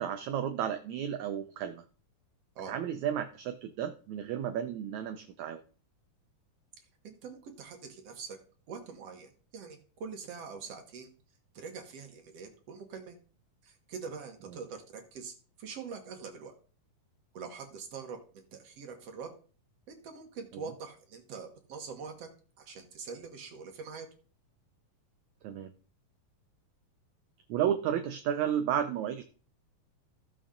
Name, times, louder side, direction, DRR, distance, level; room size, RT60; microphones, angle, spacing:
voice 1, 0.0-1.8 2.7-5.6 20.5-20.6 25.4-25.7 27.5-29.2, right 9 dB, 75° right, 8 dB, 1.8 m, -32 dB
voice 2, 7.0-8.4 8.7-11.1 11.5-13.2 13.6-16.5 17.3-19.3 19.9-22.3 22.6-24.1, right 5 dB, 55° right, 5 dB, 2.1 m, -44 dB
14.5 x 7.0 x 3.8 m, 0.39 s
omnidirectional pair, 3.9 m